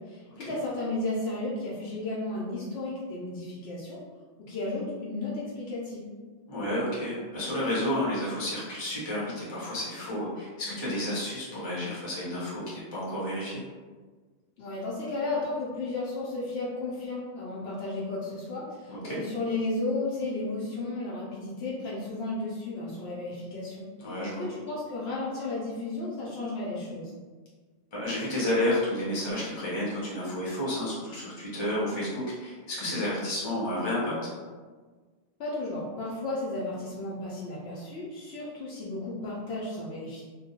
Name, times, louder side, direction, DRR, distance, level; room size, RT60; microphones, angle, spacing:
voice 1, 0.0-4.0 4.4-6.1 14.6-23.9 24.4-27.1 35.4-40.2, left 2 dB, 65° left, -6 dB, 0.8 m, -33 dB
voice 2, 6.5-13.6 18.9-19.2 24.0-24.4 27.9-34.3, left 1 dB, 30° left, -7 dB, 0.7 m, -31 dB
2.3 x 2.1 x 2.7 m, 1.4 s
omnidirectional pair, 1.2 m